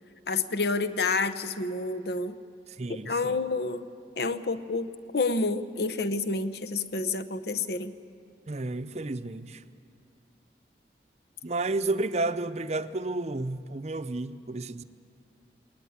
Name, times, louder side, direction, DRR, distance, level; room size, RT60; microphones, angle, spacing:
voice 1, 0.3-2.4 2.9-3.9 4.2-4.9 5.1-7.9, left 3 dB, 65° left, 0.9 m, -29 dB
voice 2, 2.8-3.4 8.5-9.6 11.4-14.8, right 2 dB, 40° right, 0.7 m, -31 dB
21.0 x 19.5 x 9.6 m
head